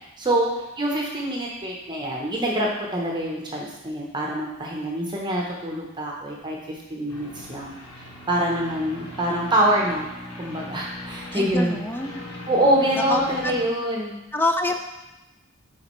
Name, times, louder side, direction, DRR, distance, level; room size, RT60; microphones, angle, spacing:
voice 1, 0.2-7.8 8.3-10.0 10.4-11.8 12.5-14.2, right 1 dB, 20° right, -2 dB, 0.7 m, -25 dB
sound 1, 7.1-13.7, left 1 dB, 80° left, 1.2 m, -39 dB
voice 2, 11.3-12.2 13.0-13.6 14.3-14.8, left 2 dB, 10° left, 5 dB, 0.3 m, -26 dB
9.4 x 3.9 x 3.0 m, 0.97 s
head